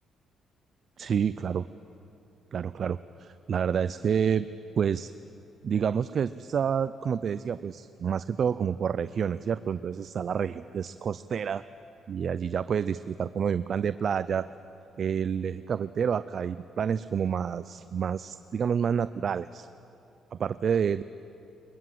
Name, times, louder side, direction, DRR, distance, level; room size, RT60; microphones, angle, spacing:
voice 1, 1.0-1.7 2.5-4.5 4.8-5.1 5.6-11.6 12.1-14.5 15.0-19.7 20.3-21.0, right 7 dB, 55° right, 14 dB, 0.4 m, -28 dB
21.5 x 20.5 x 7.7 m, 2.8 s
cardioid pair, 90°, 0 cm